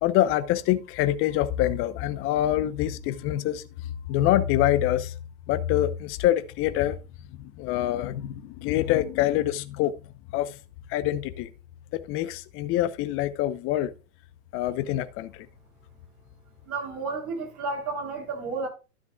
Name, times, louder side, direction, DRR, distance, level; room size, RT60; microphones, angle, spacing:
voice 1, 0.0-3.6 4.1-5.1 5.5-7.0 7.4-9.9 10.3-10.6 10.9-11.5 11.9-13.9 14.5-15.5, left 13 dB, 25° left, 0.8 m, -25 dB
voice 2, 16.6-18.7, right 3 dB, 35° right, 7.2 m, -32 dB
12.5 x 10.5 x 2.4 m
hypercardioid pair, 120°, 47 cm